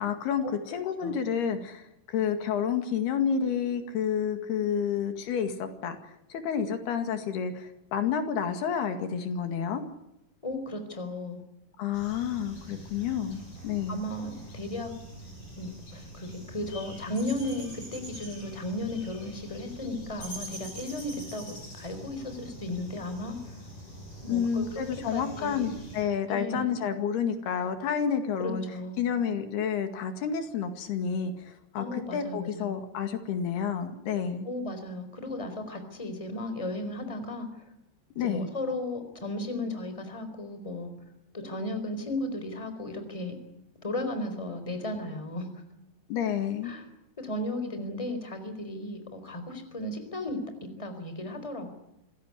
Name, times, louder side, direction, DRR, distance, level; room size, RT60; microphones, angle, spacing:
voice 1, 0.0-9.8 11.8-14.0 24.3-28.6 29.0-34.5 38.2-38.5 46.1-46.7, left 7 dB, 80° left, 7 dB, 4.1 m, -30 dB
voice 2, 10.4-11.4 13.9-14.9 15.6-23.6 24.2-24.8 25.1-25.7 26.3-26.8 28.4-29.1 31.8-32.8 34.4-37.6 38.1-40.9 41.3-43.4 43.8-45.5 46.6-46.8 47.2-51.7, left 1 dB, 10° left, 8 dB, 3.8 m, -35 dB
sound 1, 11.9-26.0, right 1 dB, 50° left, 9.4 m, -44 dB
26.0 x 17.0 x 9.9 m, 0.86 s
omnidirectional pair, 4.6 m